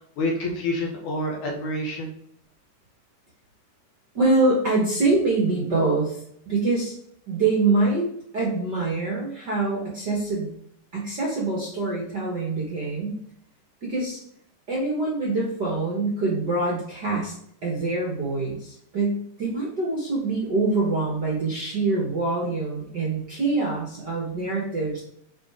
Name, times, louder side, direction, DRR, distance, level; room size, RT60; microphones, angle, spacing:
voice 1, 0.0-2.1, left 1 dB, 65° left, -2 dB, 2.8 m, -28 dB
voice 2, 4.1-6.2 6.5-6.9 7.3-8.1 8.3-10.5 10.9-13.2 13.8-14.2 14.7-17.3 17.6-25.0, right 3 dB, 45° right, -4 dB, 1.6 m, -25 dB
9.0 x 3.9 x 3.6 m, 0.69 s
omnidirectional pair, 3.8 m